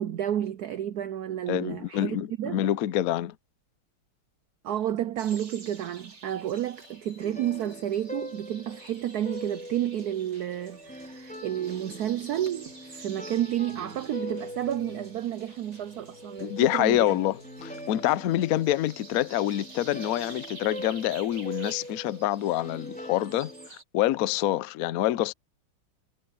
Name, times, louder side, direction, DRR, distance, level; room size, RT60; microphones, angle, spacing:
voice 1, 0.0-2.6 4.6-17.2, right 11 dB, 85° right, 0.8 m, -31 dB
voice 2, 1.5-3.4 16.4-25.3, left 13 dB, 80° left, 0.8 m, -26 dB
sound 1, 5.2-23.8, right 4 dB, 50° right, 3.5 m, -50 dB
sound 2, 6.2-23.7, equal, 5° left, 4.0 m, -43 dB
sound 3, 9.3-18.5, right 1 dB, 30° right, 7.2 m, -56 dB
omnidirectional pair, 2.3 m